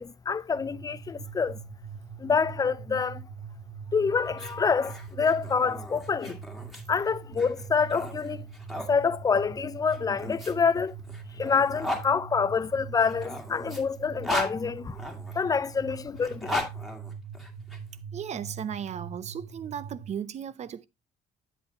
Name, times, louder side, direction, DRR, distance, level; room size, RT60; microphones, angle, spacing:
voice 1, 0.0-1.6 2.2-3.3 3.9-6.4 6.9-8.5 8.9-10.9 11.4-15.0 15.3-16.5, left 5 dB, 20° left, 0.4 m, -27 dB
sound 1, 0.5-20.1, right 6 dB, 70° right, 1.5 m, -43 dB
sound 2, 4.3-8.9 9.9-12.1 13.0-15.3 16.1-17.8, left 1 dB, ahead, 1.7 m, -36 dB
voice 2, 18.1-20.9, right 8 dB, 40° right, 0.6 m, -36 dB
8.2 x 7.9 x 2.7 m
cardioid pair, 110°, 17 cm